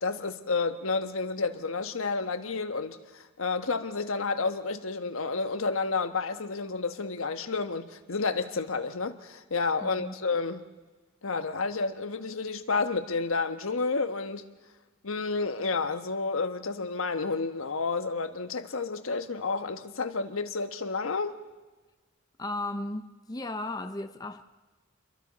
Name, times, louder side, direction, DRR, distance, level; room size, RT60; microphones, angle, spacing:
voice 1, 0.0-10.6 11.2-14.5 15.0-21.4, left 4 dB, 80° left, 1.3 m, -30 dB
voice 2, 9.8-10.2 22.4-24.4, left 2 dB, 20° left, 0.7 m, -35 dB
29.0 x 23.0 x 4.2 m
head